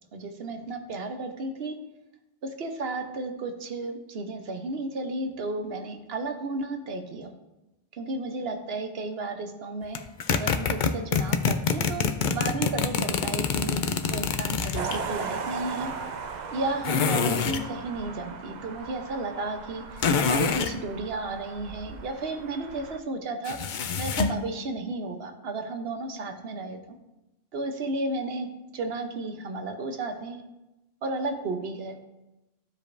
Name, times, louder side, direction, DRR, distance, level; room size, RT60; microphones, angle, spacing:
voice 1, 0.1-1.8 2.4-7.3 8.0-10.0 10.3-12.0 12.3-15.9 16.5-23.6 24.0-27.0 27.5-28.5 28.7-30.4 31.0-32.0, right 2 dB, 75° right, 6 dB, 1.1 m, -33 dB
sound 1, 9.9-15.0 16.8-17.7 20.0-20.7 23.4-24.4, left 6 dB, 60° left, 0.6 m, -26 dB
sound 2, 14.7-23.0, right 5 dB, 50° right, 0.7 m, -37 dB
14.5 x 5.0 x 2.6 m, 0.97 s
omnidirectional pair, 1.0 m